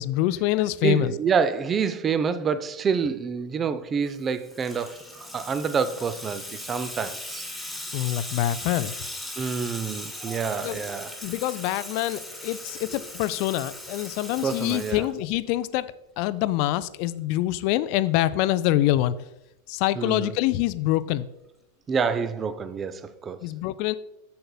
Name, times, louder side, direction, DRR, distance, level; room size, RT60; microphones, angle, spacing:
voice 1, 0.0-1.1 7.9-8.9 10.6-10.8 11.2-15.9 16.2-19.1 19.7-21.3 23.4-23.9, left 14 dB, 45° left, 0.4 m, -25 dB
voice 2, 0.8-7.5 9.4-11.1 14.4-15.1 20.0-20.3 21.9-23.4, right 6 dB, 20° right, 0.4 m, -27 dB
Water tap faucet / Sink (filling or washing), 4.1-15.6, left 1 dB, ahead, 1.7 m, -38 dB
10.0 x 7.7 x 2.3 m
figure-of-eight pair, 90°, 0 cm